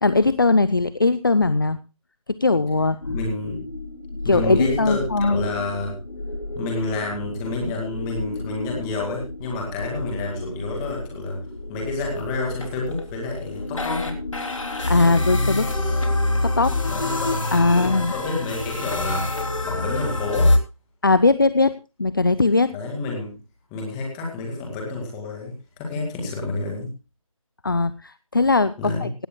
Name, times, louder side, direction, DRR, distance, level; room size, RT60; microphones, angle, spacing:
voice 1, 0.0-1.8 2.3-3.0 4.2-5.4 14.9-15.8 16.4-16.8 17.5-18.1 21.0-21.7 22.0-22.7 27.6-29.3, left 3 dB, 35° left, 14 dB, 0.5 m, -20 dB
sound 1, 3.0-20.6, left 2 dB, 65° left, 3.6 m, -27 dB
voice 2, 3.1-3.6 4.2-6.0 6.5-11.4 11.7-14.2 16.9-17.4 17.7-20.5 22.7-23.3 23.7-26.9 28.8-29.1, left 3 dB, 10° left, 0 dB, 2.2 m, -29 dB
17.0 x 16.0 x 2.2 m, 0.30 s
figure-of-eight pair, 170°, 18 cm